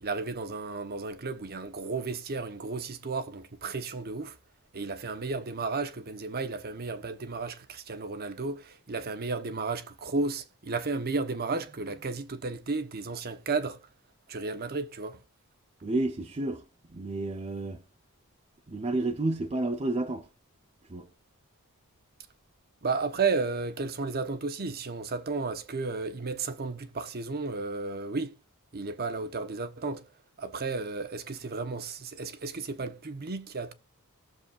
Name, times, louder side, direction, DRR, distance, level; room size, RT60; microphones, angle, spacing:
voice 1, 0.0-4.4 4.7-13.8 14.3-15.2 22.8-28.3 28.7-30.0 30.4-33.7, right 4 dB, 45° right, 0.9 m, -33 dB
voice 2, 15.8-17.8 18.7-20.3 20.9-21.1, right 2 dB, 30° right, 0.6 m, -31 dB
20.0 x 7.0 x 2.4 m
head